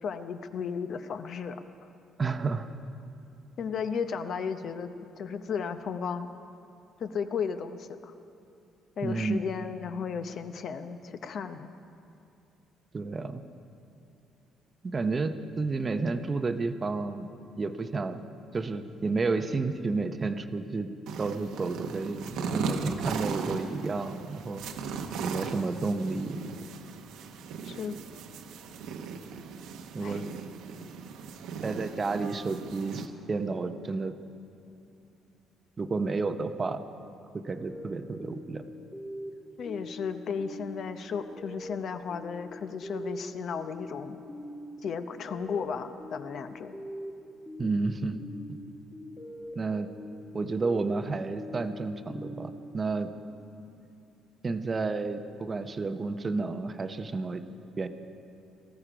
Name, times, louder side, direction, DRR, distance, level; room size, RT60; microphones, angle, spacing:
voice 1, 0.0-1.6 3.6-6.3 7.0-8.1 9.0-11.7 24.6-24.9 27.6-28.0 30.0-30.2 39.6-44.2 44.8-46.7, left 6 dB, 50° left, 9 dB, 0.7 m, -34 dB
voice 2, 2.2-2.7 9.0-9.4 12.9-13.4 14.8-17.3 17.6-18.2 18.5-20.9 21.2-24.6 25.2-26.4 29.9-30.2 31.6-34.1 35.8-36.8 37.3-38.6 47.6-48.2 48.5-48.6 49.6-49.9 50.3-53.1 54.4-57.4 57.8-57.9, right 3 dB, 25° right, 9 dB, 0.7 m, -31 dB
sound 1, 21.1-33.1, right 5 dB, 85° right, 1.0 m, -37 dB
sound 2, 37.5-53.8, equal, 20° left, 1.7 m, -43 dB
18.5 x 14.0 x 5.0 m, 2.7 s
cardioid pair, 140°, 0 cm